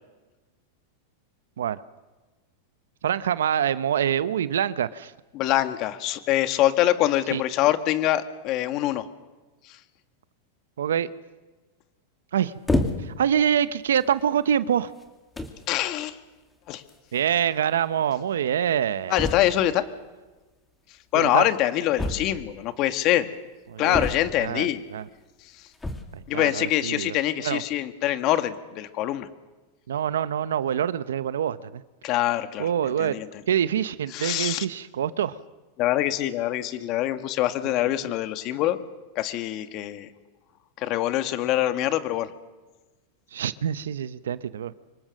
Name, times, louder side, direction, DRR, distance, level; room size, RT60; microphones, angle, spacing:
voice 1, 3.0-5.1 7.3-7.4 10.8-11.1 12.3-12.5 13.0-14.9 17.1-19.2 21.1-21.5 23.7-24.1 24.4-25.1 26.1-27.6 29.9-31.8 32.6-33.2 33.5-35.4 37.6-37.7 43.3-44.7, right 9 dB, 85° right, 15 dB, 0.9 m, -25 dB
voice 2, 5.3-9.1 15.7-16.2 16.7-16.8 19.1-19.8 21.1-23.3 23.8-24.8 26.3-29.3 32.0-32.7 33.0-33.3 34.1-34.7 35.8-38.8 39.2-40.1 40.8-42.3, left 13 dB, 45° left, 10 dB, 1.8 m, -24 dB
sound 1, 12.7-13.3 14.0-14.2 15.0-15.1 15.4-15.7 16.9-17.0 17.2-17.3 17.5-17.6 19.2-19.7 22.0-22.6 23.9-24.6 25.7-26.2, left 2 dB, 10° left, 2.5 m, -28 dB
26.0 x 23.5 x 6.6 m, 1.2 s
hypercardioid pair, 120°, 0 cm